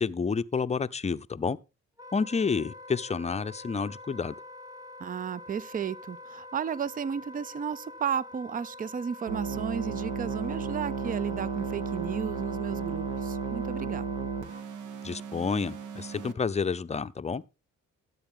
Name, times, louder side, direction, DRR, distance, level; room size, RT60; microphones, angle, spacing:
voice 1, 0.0-1.6 2.1-4.3 15.0-17.4, left 5 dB, 20° left, 0.6 m, -29 dB
Wind instrument woodwind instrument, 2.0-14.7, left 2 dB, 10° right, 1.2 m, -46 dB
voice 2, 5.0-14.1, right 7 dB, 30° right, 0.5 m, -34 dB
sound 1, 9.3-16.3, right 6 dB, 75° right, 1.2 m, -34 dB
13.5 x 8.2 x 3.7 m
cardioid pair, 90°, 30 cm